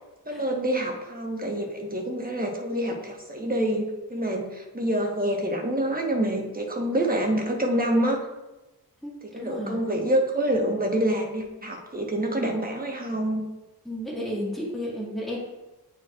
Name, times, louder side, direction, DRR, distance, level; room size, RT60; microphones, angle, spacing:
voice 1, 0.3-8.2 9.2-13.4, right 1 dB, 20° right, 0 dB, 1.3 m, -27 dB
voice 2, 9.0-9.8 13.9-15.4, equal, ahead, -6 dB, 2.1 m, -33 dB
9.1 x 4.5 x 2.5 m, 1.1 s
cardioid pair, 50°, 39 cm